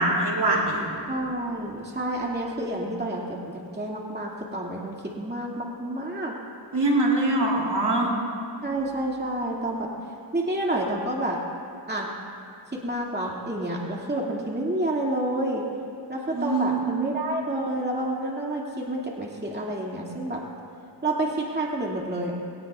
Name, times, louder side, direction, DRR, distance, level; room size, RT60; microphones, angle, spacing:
voice 1, 0.0-0.9 6.7-8.1 16.3-16.8, right 2 dB, 65° right, -2 dB, 3.0 m, -23 dB
voice 2, 1.1-6.3 8.6-9.9 10.3-11.4 11.9-12.1 12.7-15.6 16.1-20.4 21.0-22.3, right 1 dB, 20° right, -3 dB, 2.3 m, -29 dB
21.0 x 19.0 x 2.4 m, 2.5 s
cardioid pair, 65°, 44 cm